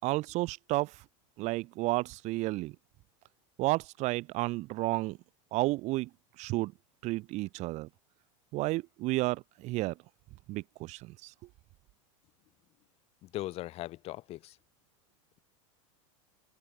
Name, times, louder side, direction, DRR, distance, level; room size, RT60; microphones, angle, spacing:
voice 1, 0.0-1.0 1.4-2.8 3.6-5.2 5.5-6.1 6.4-6.7 7.0-7.9 8.5-9.9 10.5-11.3, right 20 dB, 45° right, 5.9 m, -32 dB
voice 2, 13.2-14.5, left 16 dB, 35° left, 2.6 m, -39 dB
supercardioid pair, 150°, 17 cm